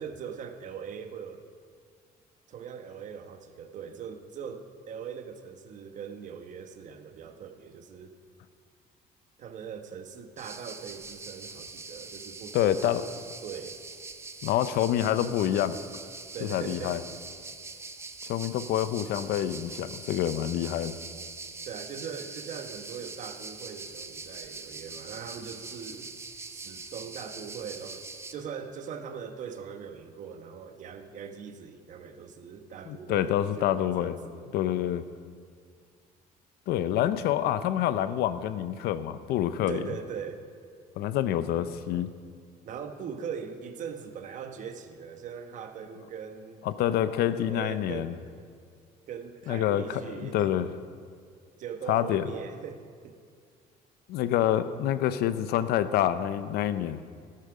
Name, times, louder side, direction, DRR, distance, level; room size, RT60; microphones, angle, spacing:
voice 1, 0.0-1.4 2.5-8.1 9.4-13.1 13.4-13.8 16.3-17.0 21.6-26.1 26.5-34.5 39.7-40.4 42.6-46.6 47.4-48.5 49.1-50.6 51.6-53.2, right 7 dB, 50° right, 7 dB, 1.1 m, -41 dB
sound 1, 10.4-28.3, right 3 dB, 15° right, 0.6 m, -43 dB
voice 2, 12.5-13.1 14.4-15.7 16.4-17.0 18.3-21.0 32.9-34.2 34.5-35.0 36.7-39.8 41.0-42.1 46.6-48.1 49.5-50.7 51.9-52.3 54.1-57.0, left 11 dB, 85° left, 13 dB, 0.7 m, -27 dB
13.0 x 12.5 x 5.0 m, 2.1 s
cardioid pair, 140°, 16 cm